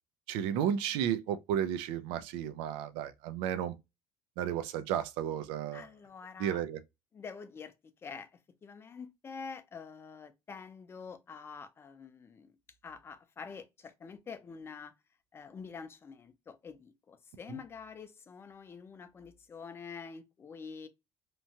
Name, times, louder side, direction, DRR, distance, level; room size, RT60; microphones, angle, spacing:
voice 1, 0.3-3.7 4.4-5.8 6.4-6.8, right 9 dB, 90° right, 0.4 m, -33 dB
voice 2, 5.7-6.6 7.1-8.3 8.6-12.6 12.8-14.9 15.3-20.9, left 5 dB, 25° left, 0.5 m, -47 dB
3.0 x 2.2 x 2.7 m
cardioid pair, 125°, 9 cm